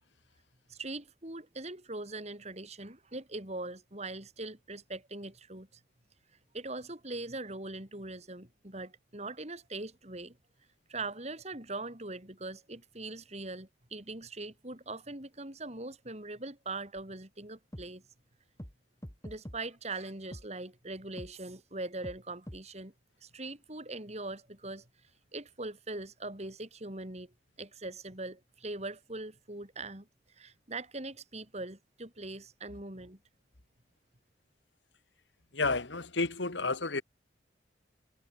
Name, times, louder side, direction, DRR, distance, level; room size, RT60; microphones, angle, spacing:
voice 1, 0.7-5.8 6.5-10.4 10.9-18.0 19.2-22.9 23.2-24.9 25.3-30.1 30.4-33.2, right 2 dB, 35° right, 3.7 m, -41 dB
sound 1, 17.0-17.1 17.7-17.9 18.6-18.7 19.0-19.6 20.3-20.4 21.2-21.3 22.0-22.2 22.5-22.6, equal, 15° left, 3.5 m, -43 dB
voice 2, 35.5-37.0, left 3 dB, 75° left, 2.1 m, -31 dB
head